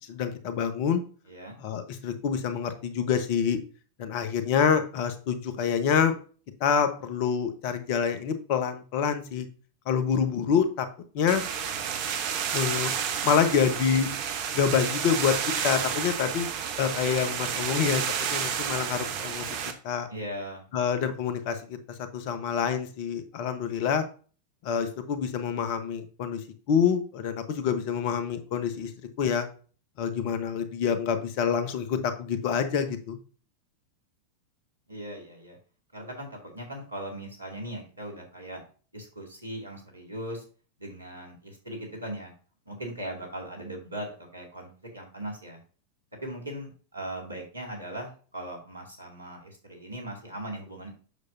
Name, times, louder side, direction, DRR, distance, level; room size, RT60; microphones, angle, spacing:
voice 1, 0.1-1.0 1.6-3.6 4.0-6.1 6.6-9.5 9.9-10.9 11.1-11.4 12.5-12.9 13.2-14.1 14.5-15.3 15.6-16.5 16.8-18.0 18.3-19.5 19.8-20.1 20.7-21.8 22.1-24.0 24.6-26.4 26.7-28.9 29.2-29.5 30.0-33.2, left 7 dB, 45° left, 9 dB, 1.1 m, -26 dB
voice 2, 1.2-1.6 20.1-20.6 34.9-35.6 35.9-38.6 38.9-40.4 40.8-42.3 42.7-45.6 46.2-50.9, right 1 dB, 80° right, 1 dB, 2.4 m, -39 dB
sound 1, 11.3-19.7, right 8 dB, 45° right, 1.1 m, -31 dB
8.1 x 6.5 x 2.7 m, 0.39 s
figure-of-eight pair, 90°, 0 cm